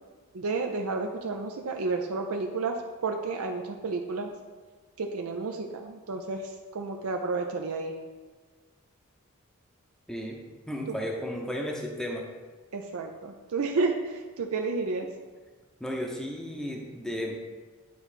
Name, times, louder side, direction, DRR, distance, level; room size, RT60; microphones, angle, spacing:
voice 1, 0.3-4.3 5.0-7.9 12.7-15.1, right 3 dB, 75° right, 3 dB, 0.5 m, -31 dB
voice 2, 10.1-10.4 10.7-12.3 15.8-17.4, equal, 5° left, 0 dB, 0.7 m, -34 dB
9.3 x 3.2 x 4.9 m, 1.4 s
head